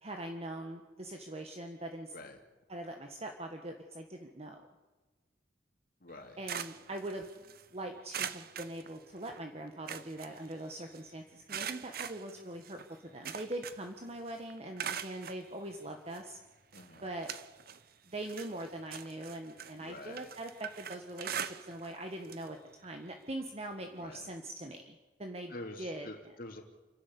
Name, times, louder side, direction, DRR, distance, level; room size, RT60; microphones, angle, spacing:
voice 1, 0.0-2.1 2.7-4.7 6.4-16.4 17.0-17.3 18.1-25.5 25.8-26.1, right 1 dB, 35° right, 4 dB, 1.6 m, -42 dB
voice 2, 6.0-6.4 16.7-17.1 19.8-20.3 24.0-24.3 25.5-26.6, left 2 dB, 55° left, 4 dB, 2.9 m, -47 dB
sound 1, 6.1-7.6 8.1-9.4 9.7-11.0 11.5-14.0 14.3-15.4 16.1-16.2 16.7-17.8 18.2-22.0 22.2-22.5 22.8-22.9 24.1-24.2, right 8 dB, 55° right, 1.0 m, -42 dB
29.5 x 11.5 x 8.4 m, 1.2 s
head